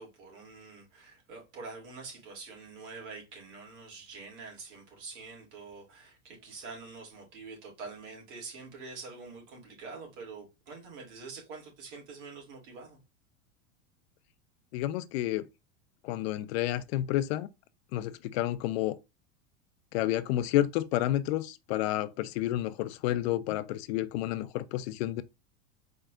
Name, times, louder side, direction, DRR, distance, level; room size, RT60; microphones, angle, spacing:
voice 1, 0.0-13.0, right 4 dB, 65° right, 2.9 m, -46 dB
voice 2, 14.7-15.4 16.0-17.5 17.9-19.0 19.9-25.2, left 14 dB, 55° left, 0.5 m, -30 dB
4.7 x 4.4 x 2.5 m
supercardioid pair, 140°, 38 cm